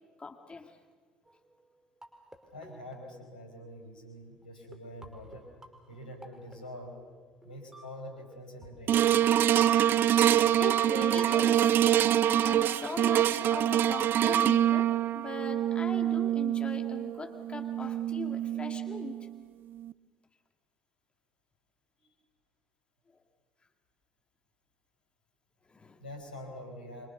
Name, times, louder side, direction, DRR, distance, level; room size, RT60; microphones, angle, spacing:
voice 1, 0.2-0.7 9.3-9.5 10.6-11.8 12.4-19.2 25.7-26.0, left 4 dB, 25° left, 4 dB, 3.0 m, -40 dB
sound 1, 1.3-3.7 4.4-4.5 4.7-8.7 8.9-9.3, right 1 dB, 10° right, 5.2 m, -54 dB
voice 2, 2.5-5.5 5.9-7.0 7.4-9.1 22.0-22.1 26.0-27.1, left 1 dB, 85° left, 4 dB, 5.5 m, -45 dB
sound 2, 8.9-19.3 19.8-19.9, right 11 dB, 50° right, 0.7 m, -25 dB
26.0 x 25.5 x 7.0 m, 1.5 s
figure-of-eight pair, 60°, 5 cm